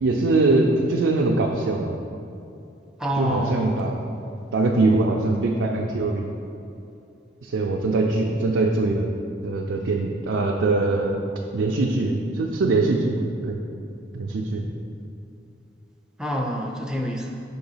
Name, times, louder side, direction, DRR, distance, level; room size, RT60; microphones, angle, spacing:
voice 1, 0.0-2.0 3.2-4.0 4.5-6.3 7.4-9.2 9.4-11.2 11.5-13.6 14.1-14.6, right 2 dB, 85° right, 0 dB, 0.4 m, -22 dB
voice 2, 3.0-3.8 16.2-17.4, equal, 5° right, 0 dB, 0.4 m, -26 dB
5.1 x 3.9 x 5.5 m, 2.6 s
head